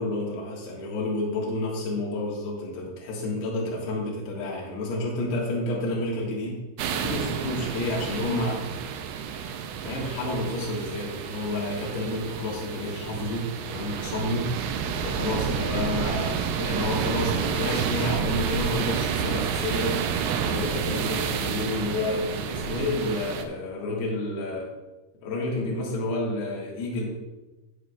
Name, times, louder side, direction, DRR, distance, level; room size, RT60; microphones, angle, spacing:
voice 1, 0.0-6.6 6.9-8.9 9.8-14.5 15.0-20.1 20.4-24.7 25.2-27.1, left 2 dB, 75° left, -4 dB, 3.7 m, -30 dB
sound 1, 6.8-23.4, right 7 dB, 80° right, 2.5 m, -30 dB
12.5 x 8.2 x 2.4 m, 1.1 s
omnidirectional pair, 4.8 m